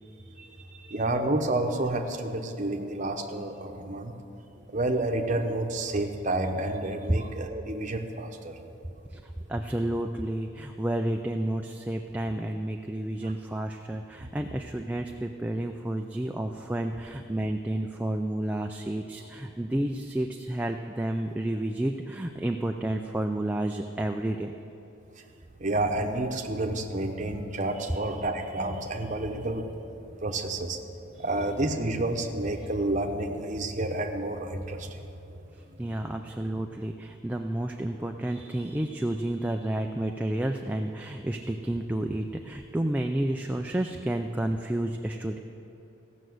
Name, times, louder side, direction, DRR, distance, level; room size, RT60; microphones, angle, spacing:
voice 1, 0.0-1.0 7.1-7.2 9.1-24.5 31.1-31.2 35.8-45.4, right 1 dB, 10° right, 3 dB, 0.3 m, -31 dB
voice 2, 0.9-4.1 4.7-8.5 13.2-13.3 25.6-29.7 30.2-30.8 31.2-35.0, right 2 dB, 40° right, 3 dB, 0.9 m, -29 dB
16.0 x 6.2 x 7.8 m, 2.9 s
head